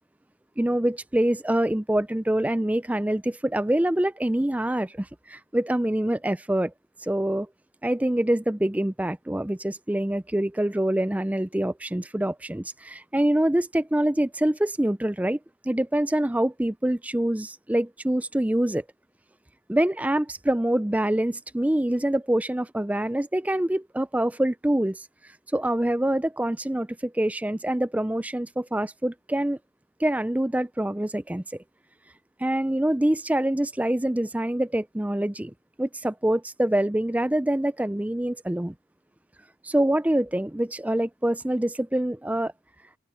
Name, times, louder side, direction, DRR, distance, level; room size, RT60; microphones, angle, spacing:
voice 1, 0.6-6.7 7.0-7.5 7.8-18.8 19.7-25.1 25.5-29.6 30.0-31.4 32.4-38.7 39.6-42.5, right 1 dB, 5° right, 0.4 m, -25 dB
head